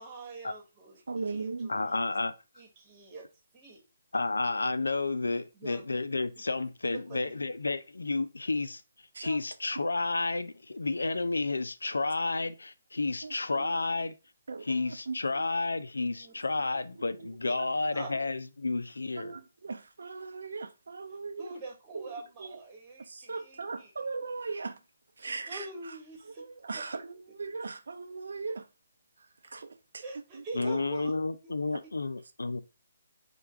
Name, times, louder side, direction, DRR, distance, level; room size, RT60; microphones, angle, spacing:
voice 1, 0.0-2.0 2.6-3.3 3.5-3.8 5.5-5.8 6.9-7.2 16.2-16.6 17.5-17.6 17.9-18.1 21.4-23.9 25.2-26.4 26.7-26.8 30.0-31.1 31.4-31.6, right 3 dB, 25° right, 1.3 m, -45 dB
voice 2, 1.1-1.7 9.1-9.4 13.2-13.8 14.5-15.5 16.9-18.1 19.2-21.5 21.9-22.1 22.4-22.6 23.1-24.8 25.2-26.0 26.4-28.7 29.2-30.0 30.3-30.4 31.7-31.8, right 4 dB, 70° right, 0.6 m, -39 dB
voice 3, 1.7-2.3 4.1-8.8 9.2-14.1 14.7-19.3 30.5-32.6, left 3 dB, 80° left, 0.4 m, -31 dB
4.5 x 2.3 x 3.4 m
figure-of-eight pair, 145°, 0 cm